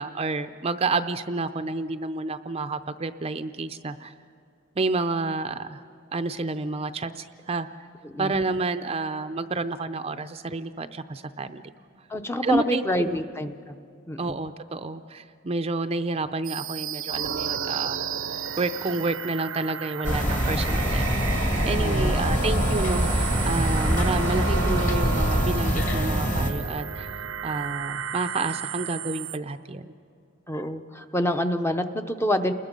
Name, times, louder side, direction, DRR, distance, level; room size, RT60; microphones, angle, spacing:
voice 1, 0.0-4.1 4.8-5.8 6.1-7.7 8.2-11.6 12.4-13.2 14.2-18.0 18.6-21.1 21.6-27.1 27.4-29.9, right 3 dB, 30° right, 9 dB, 0.5 m, -29 dB
voice 2, 12.1-13.7 14.1-14.4 21.8-22.1 30.5-32.5, left 1 dB, 15° left, 7 dB, 0.7 m, -27 dB
sound 1, 16.4-29.4, right 7 dB, 85° right, 0.7 m, -32 dB
sound 2, 20.0-26.5, equal, 40° left, 2.3 m, -24 dB
30.0 x 21.0 x 5.3 m, 2.3 s
head